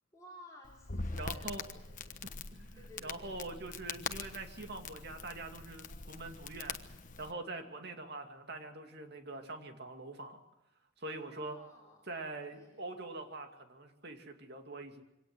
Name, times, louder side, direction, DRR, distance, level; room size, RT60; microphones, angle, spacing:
voice 1, 0.0-2.3 2.7-3.5 11.0-12.1 12.5-12.8, left 1 dB, 15° left, -3 dB, 4.5 m, -56 dB
Crackle, 0.6-7.3, left 4 dB, 40° left, 1.2 m, -43 dB
voice 2, 1.1-1.6 2.5-6.8 7.2-10.4 11.0-11.6 12.1-15.0, right 2 dB, 55° right, 5 dB, 2.5 m, -44 dB
24.5 x 18.0 x 8.0 m, 0.90 s
head